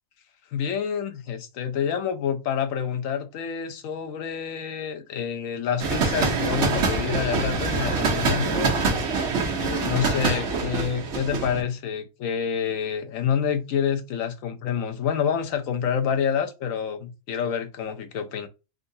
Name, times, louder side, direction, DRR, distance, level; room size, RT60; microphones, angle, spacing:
voice 1, 0.5-8.8 9.6-18.5, left 7 dB, 75° left, 1.0 m, -28 dB
sound 1, 5.8-11.6, right 4 dB, 55° right, 1.1 m, -25 dB
3.8 x 2.4 x 2.6 m
omnidirectional pair, 1.5 m